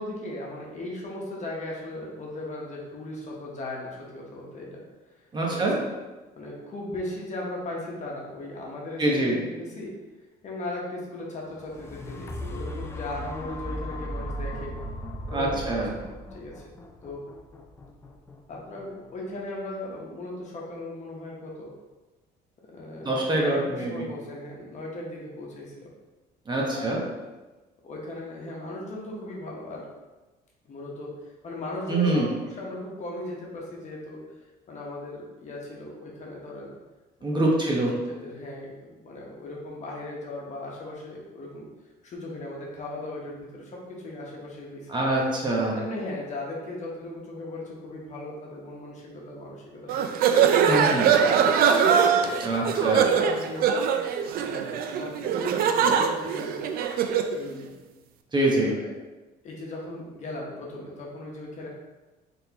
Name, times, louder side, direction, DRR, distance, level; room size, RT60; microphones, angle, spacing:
voice 1, 0.0-4.8 5.1-5.2 5.5-5.7 6.4-10.0 10.4-14.8 15.3-16.1 16.3-16.6 17.0-17.2 18.5-21.7 22.6-25.9 26.7-27.0 27.8-29.9 30.6-31.1 31.4-34.2 34.7-36.7 37.3-41.7 42.0-44.9 45.7-50.4 51.0-51.7 52.5-53.7 54.4-56.7 57.3-57.7 58.7-58.9 59.4-61.7, left 1 dB, 45° left, -3 dB, 1.1 m, -38 dB
voice 2, 5.3-5.8 9.0-9.4 15.3-15.9 23.0-24.0 26.5-27.0 31.9-32.3 37.2-37.9 44.9-45.8 50.7-51.1 52.4-53.1 58.3-58.7, right 2 dB, 25° right, -3 dB, 1.0 m, -24 dB
sound 1, 11.5-19.5 20.1-20.2, equal, 15° left, 0.4 m, -37 dB
sound 2, 49.9-57.4, right 7 dB, 60° right, 0.4 m, -22 dB
3.9 x 3.6 x 2.9 m, 1.2 s
cardioid pair, 110°, 17 cm